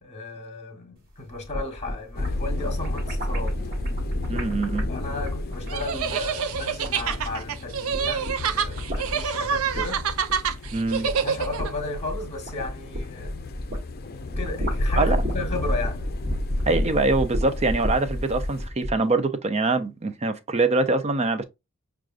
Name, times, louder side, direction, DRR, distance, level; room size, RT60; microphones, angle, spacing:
voice 1, 0.0-3.6 4.9-10.0 11.0-13.4 14.4-16.1, left 2 dB, 30° left, 1.2 m, -34 dB
sound 1, 1.3-7.5 7.8-13.9 14.2-19.0, equal, 45° right, 1.4 m, -31 dB
sound 2, 2.1-18.7, left 1 dB, 45° left, 0.5 m, -33 dB
voice 2, 4.3-4.9 10.7-11.1 15.0-15.2 16.7-21.4, right 3 dB, 30° right, 0.5 m, -24 dB
sound 3, 5.7-11.7, right 7 dB, 90° right, 0.5 m, -27 dB
6.2 x 2.4 x 2.4 m
head